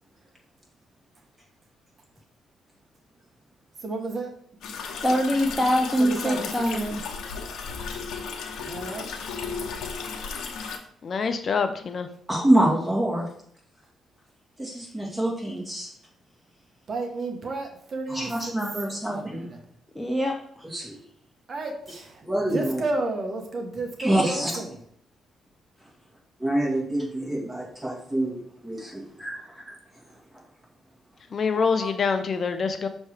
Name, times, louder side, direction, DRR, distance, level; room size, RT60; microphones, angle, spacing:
voice 1, 3.8-4.3 6.0-7.0 8.6-9.3 16.9-18.6 19.1-19.6 21.5-24.8, right 3 dB, 45° right, 3 dB, 1.2 m, -32 dB
sound 1, 4.6-10.8, left 5 dB, 75° left, 1.0 m, -34 dB
voice 2, 5.0-7.0 19.9-20.7, equal, 5° left, 0 dB, 0.7 m, -24 dB
voice 3, 11.0-12.1 31.3-32.9, left 5 dB, 45° left, 8 dB, 0.5 m, -25 dB
voice 4, 12.3-13.2 14.6-15.9 18.1-19.5 20.6-21.0 22.3-22.8 24.0-24.5 26.4-28.4 28.6-29.3 31.5-31.7, right 1 dB, 10° right, -4 dB, 2.4 m, -26 dB
6.5 x 3.1 x 4.8 m, 0.65 s
cardioid pair, 90°, 0 cm